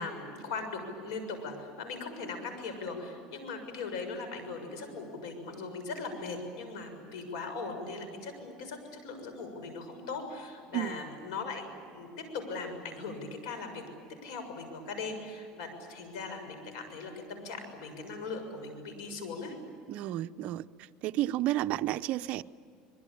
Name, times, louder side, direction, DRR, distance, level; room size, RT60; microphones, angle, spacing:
voice 1, 0.0-13.8 14.2-19.6, left 4 dB, 90° left, 7 dB, 6.6 m, -39 dB
voice 2, 19.9-20.7 21.0-22.4, right 14 dB, 55° right, 12 dB, 0.7 m, -31 dB
25.5 x 22.5 x 8.6 m, 2.5 s
cardioid pair, 135°, 3 cm